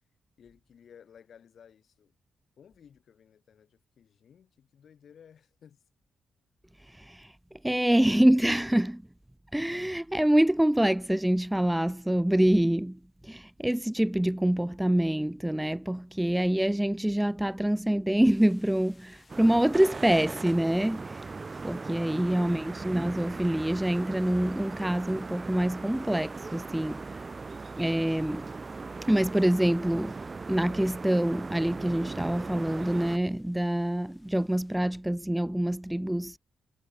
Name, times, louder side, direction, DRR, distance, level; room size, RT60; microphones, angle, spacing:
voice 1, 0.4-2.1 2.6-5.8 7.8-7.9, left 8 dB, 65° left, 6.7 m, -55 dB
voice 2, 7.0-7.3 7.6-9.0 9.5-21.3 21.6-27.2 27.8-28.5 29.1-30.2 30.5-36.4, right 1 dB, 5° right, 0.3 m, -26 dB
sound 1, 18.2-34.8, left 3 dB, 30° left, 5.8 m, -64 dB
sound 2, 19.3-33.2, right 4 dB, 35° right, 0.7 m, -39 dB
supercardioid pair, 60°, 0 cm